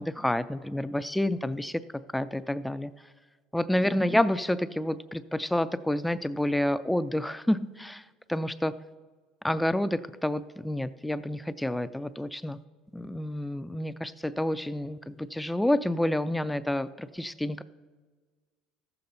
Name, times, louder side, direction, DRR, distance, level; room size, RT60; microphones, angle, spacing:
voice 1, 0.0-1.8 2.1-2.9 3.5-8.0 8.3-8.7 9.4-12.6 12.9-17.6, left 1 dB, 5° left, 13 dB, 0.3 m, -29 dB
14.0 x 6.9 x 3.9 m, 1.5 s
supercardioid pair, 125°, 0 cm